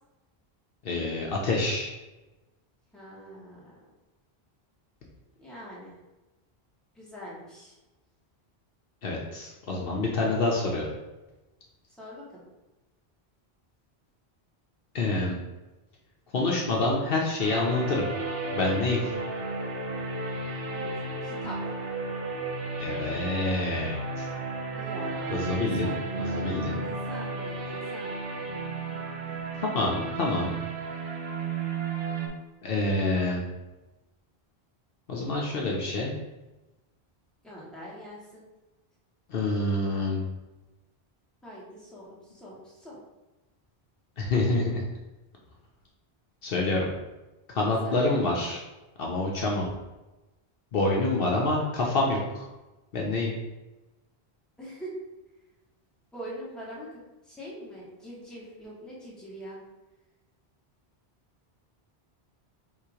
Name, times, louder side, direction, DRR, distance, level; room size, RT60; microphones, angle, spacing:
voice 1, 0.8-1.9 9.0-10.9 14.9-15.3 16.3-18.0 18.5-19.0 22.8-24.3 25.3-26.9 29.6-30.6 32.6-33.4 35.1-36.1 39.3-40.2 44.2-44.8 46.4-46.9 47.5-48.6 49.0-49.7 50.7-52.4 52.9-53.3, left 2 dB, 65° left, -2 dB, 0.9 m, -27 dB
voice 2, 2.9-3.8 5.4-5.9 6.9-7.7 12.0-12.4 20.7-20.9 21.2-21.6 24.8-26.5 26.8-28.4 37.4-38.4 41.4-43.0 47.8-48.5 54.6-54.9 56.1-56.9 57.3-59.6, equal, ahead, -7 dB, 1.3 m, -43 dB
sound 1, 17.4-32.3, right 3 dB, 65° right, 0.9 m, -33 dB
3.7 x 2.9 x 4.8 m, 1.1 s
omnidirectional pair, 1.1 m